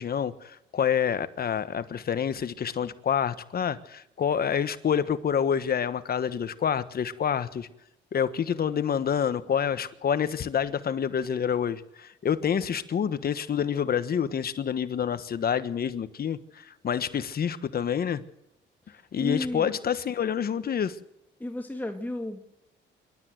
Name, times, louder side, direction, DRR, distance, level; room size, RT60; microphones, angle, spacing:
voice 1, 0.0-7.7 8.1-18.2 19.1-21.0, left 8 dB, 50° left, 1.3 m, -27 dB
voice 2, 19.2-19.7 21.4-22.4, left 1 dB, 10° left, 1.9 m, -32 dB
26.0 x 12.5 x 8.0 m
cardioid pair, 90°, 20 cm